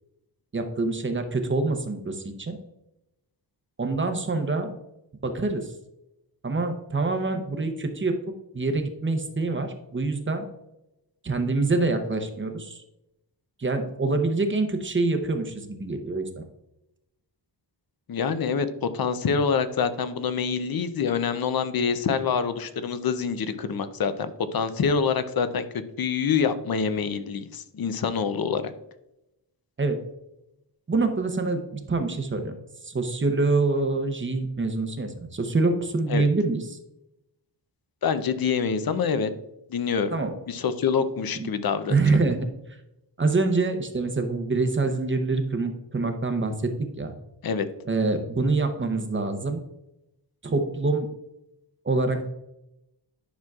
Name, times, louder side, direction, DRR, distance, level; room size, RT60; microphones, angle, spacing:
voice 1, 0.5-2.6 3.8-4.7 5.2-5.7 6.4-8.2 8.5-10.5 11.2-12.8 13.6-16.4 29.8-30.0 30.9-32.6 32.8-36.8 40.1-40.3 41.3-41.5 41.9-42.5 43.2-47.1 47.9-49.6 50.4-51.1 51.8-52.3, right 3 dB, 25° right, 6 dB, 0.7 m, -25 dB
voice 2, 18.1-25.7 26.0-28.7 36.1-36.2 38.0-39.3 39.7-40.1 40.5-42.0 47.4-47.7, left 6 dB, 55° left, 11 dB, 0.6 m, -26 dB
10.0 x 6.1 x 2.4 m, 0.88 s
wide cardioid pair, 170°, 44 cm